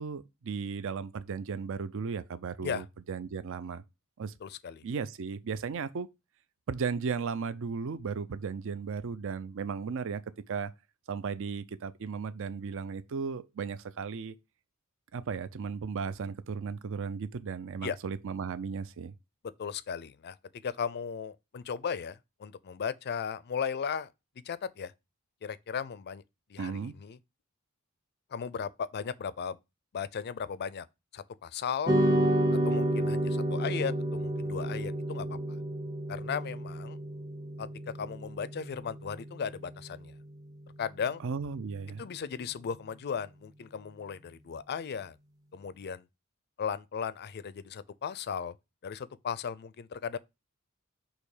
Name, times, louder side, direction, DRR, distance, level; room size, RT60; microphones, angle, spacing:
voice 1, 0.0-3.8 4.2-4.3 4.8-6.1 6.7-10.2 10.5-10.7 11.1-14.4 15.1-19.1 26.6-26.9 41.2-42.0, right 5 dB, 65° right, 0.5 m, -35 dB
voice 2, 4.4-4.8 17.8-18.0 19.6-24.1 24.4-24.9 25.4-26.2 26.5-27.2 28.3-29.6 29.9-30.9 31.1-32.0 32.5-35.6 36.1-37.0 37.6-37.7 38.0-40.1 40.8-41.2 42.0-45.2 45.5-46.1 46.6-48.5 48.8-50.2, left 6 dB, 50° left, 0.4 m, -36 dB
sound 1, 31.9-40.4, right 1 dB, 15° right, 0.6 m, -31 dB
6.4 x 3.0 x 4.8 m
head